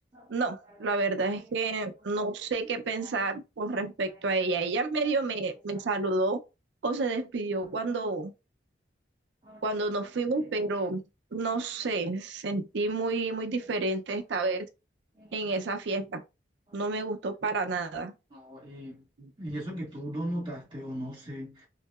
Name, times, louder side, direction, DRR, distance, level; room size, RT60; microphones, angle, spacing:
voice 1, 0.3-6.4 6.8-8.3 9.6-11.0 11.3-14.7 15.3-16.2 16.7-18.1 19.2-19.3, right 3 dB, 75° right, 0.5 m, -30 dB
voice 2, 18.3-19.0 19.4-21.7, equal, 25° right, 1.5 m, -38 dB
3.0 x 2.7 x 2.3 m
head